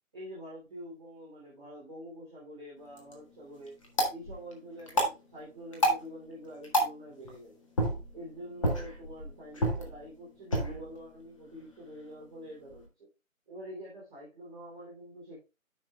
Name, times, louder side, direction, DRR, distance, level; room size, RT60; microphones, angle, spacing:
voice 1, 0.1-3.7 4.1-7.6 8.1-13.1 13.4-15.4, equal, 5° right, -17 dB, 0.8 m, -46 dB
sound 1, 2.8-12.9, equal, 25° left, 1.3 m, -34 dB
13.0 x 5.3 x 2.2 m, 0.28 s
figure-of-eight pair, 155°, 42 cm